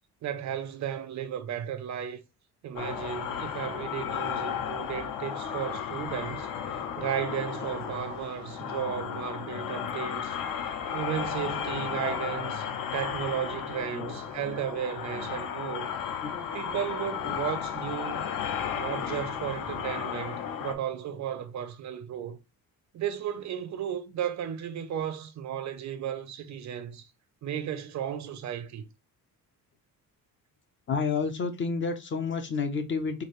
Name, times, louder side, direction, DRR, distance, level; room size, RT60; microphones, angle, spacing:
voice 1, 0.2-2.2 2.6-10.4 10.6-15.9 16.5-18.2 18.7-22.4 22.9-27.1 27.4-28.8, right 9 dB, 50° right, 0.5 m, -34 dB
sound 1, 2.8-20.7, left 8 dB, 70° left, 0.7 m, -34 dB
voice 2, 16.2-16.8 17.2-17.4 30.9-33.2, left 5 dB, 35° left, 0.5 m, -31 dB
4.6 x 2.6 x 2.9 m
cardioid pair, 180°, 36 cm